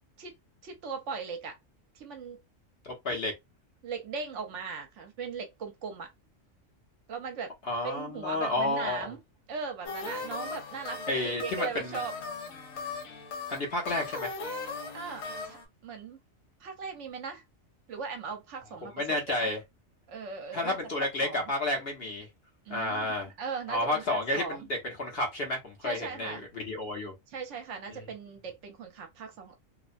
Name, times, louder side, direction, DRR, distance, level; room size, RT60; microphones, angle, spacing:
voice 1, 0.6-1.6 1.9-2.4 3.8-6.1 7.1-7.5 7.8-9.2 9.5-12.1 14.9-15.6 15.8-16.2 16.6-17.4 17.9-19.5 20.1-21.5 22.7-24.7 25.8-26.5 27.3-29.6, right 5 dB, 70° right, 0.9 m, -39 dB
voice 2, 2.8-3.3 7.7-9.1 11.1-12.0 13.5-14.3 18.9-19.6 20.5-22.3 22.7-23.3 23.7-27.1 27.9-28.0, left 2 dB, 55° left, 1.0 m, -31 dB
sound 1, 9.8-15.6, left 4 dB, 85° left, 1.1 m, -39 dB
2.8 x 2.1 x 2.5 m
omnidirectional pair, 1.4 m